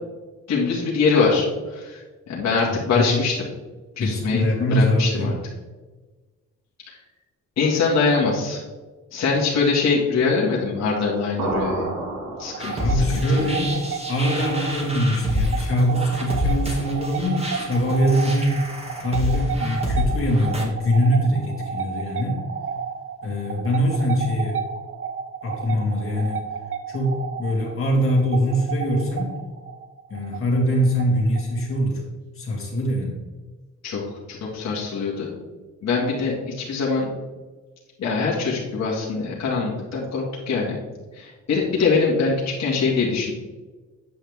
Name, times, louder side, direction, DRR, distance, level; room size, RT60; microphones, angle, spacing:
voice 1, 0.5-2.0 2.3-3.4 4.0-4.4 4.7-5.3 6.9-7.0 7.6-8.6 9.1-11.9 12.4-13.4 33.8-34.0 34.3-35.3 35.8-37.1 38.0-40.7 41.1-43.3, left 4 dB, 60° left, -4 dB, 2.1 m, -23 dB
voice 2, 2.7-3.2 4.0-5.3 12.8-13.8 14.1-18.6 19.0-22.4 23.2-24.6 25.4-26.4 26.9-29.4 30.1-32.0 32.3-33.2, equal, 45° left, -2 dB, 2.6 m, -22 dB
sound 1, 11.4-13.1, right 2 dB, 90° right, 2.2 m, -29 dB
sound 2, 12.4-31.8, right 7 dB, 45° right, 0.8 m, -33 dB
sound 3, 12.6-20.6, left 1 dB, 20° right, 2.3 m, -28 dB
9.1 x 5.7 x 3.5 m, 1.3 s
cardioid pair, 90°, 30 cm